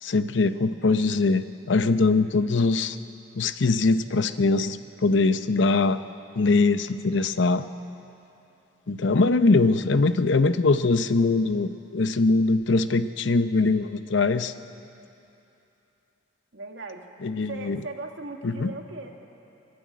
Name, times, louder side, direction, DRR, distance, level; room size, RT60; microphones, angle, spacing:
voice 1, 0.0-3.0 3.4-6.0 6.4-7.6 8.9-14.5 17.2-17.8 18.4-18.7, left 3 dB, 70° left, 11 dB, 0.7 m, -22 dB
voice 2, 16.5-17.1 17.5-19.1, right 3 dB, 75° right, 3 dB, 1.9 m, -38 dB
25.5 x 11.5 x 9.3 m, 2.9 s
head